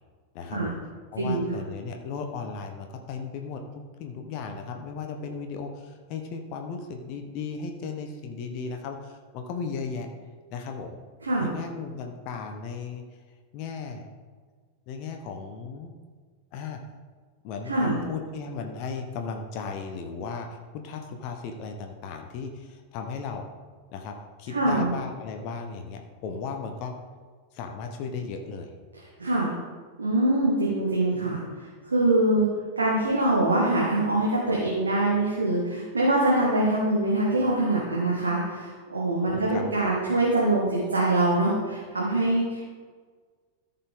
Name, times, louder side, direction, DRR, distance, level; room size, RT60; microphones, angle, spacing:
voice 1, 0.3-0.7 1.1-10.1 10.5-11.0 11.4-13.0 13.5-14.1 14.9-15.9 16.5-16.8 17.4-23.4 23.9-26.9 27.5-28.7 39.3-39.6, left 5 dB, 45° left, 4 dB, 1.0 m, -36 dB
voice 2, 1.2-1.5 11.2-11.5 17.6-18.0 24.5-24.9 29.0-29.5 30.0-32.5 32.8-42.6, right 2 dB, 75° right, -4 dB, 1.7 m, -24 dB
13.5 x 5.8 x 3.6 m, 1.5 s
figure-of-eight pair, 90°, 0 cm